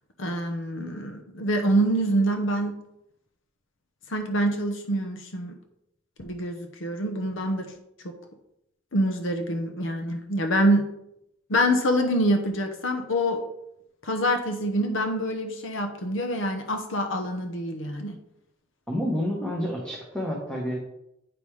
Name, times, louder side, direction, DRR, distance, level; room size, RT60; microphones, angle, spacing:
voice 1, 0.2-2.8 4.1-5.6 6.2-7.7 8.9-10.9 11.5-13.4 14.0-18.2, equal, 75° left, 5 dB, 0.9 m, -26 dB
voice 2, 18.9-20.8, equal, 5° left, -4 dB, 1.2 m, -29 dB
8.8 x 5.4 x 3.3 m, 0.80 s
head